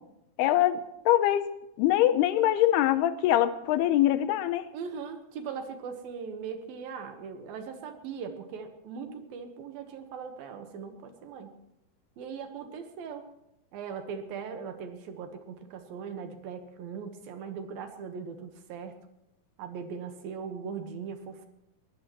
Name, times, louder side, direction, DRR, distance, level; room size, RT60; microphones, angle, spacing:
voice 1, 0.4-1.5 1.8-4.7, left 13 dB, 85° left, 12 dB, 2.8 m, -23 dB
voice 2, 4.7-11.5 12.2-13.3 13.7-19.0 19.6-21.5, right 6 dB, 70° right, 6 dB, 2.9 m, -39 dB
21.5 x 19.0 x 3.1 m, 0.83 s
omnidirectional pair, 4.6 m